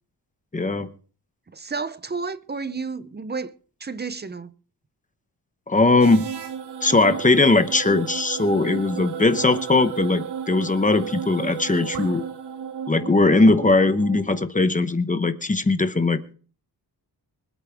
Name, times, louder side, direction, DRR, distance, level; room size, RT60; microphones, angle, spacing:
voice 1, 0.5-0.9 5.7-6.3 6.8-12.2 12.9-16.2, left 3 dB, 20° left, 0.9 m, -19 dB
voice 2, 1.5-3.5 3.8-4.5, right 4 dB, 25° right, 0.6 m, -31 dB
sound 1, 6.0-14.4, right 7 dB, 85° right, 1.7 m, -33 dB
25.0 x 8.7 x 3.5 m
wide cardioid pair, 160°, 40 cm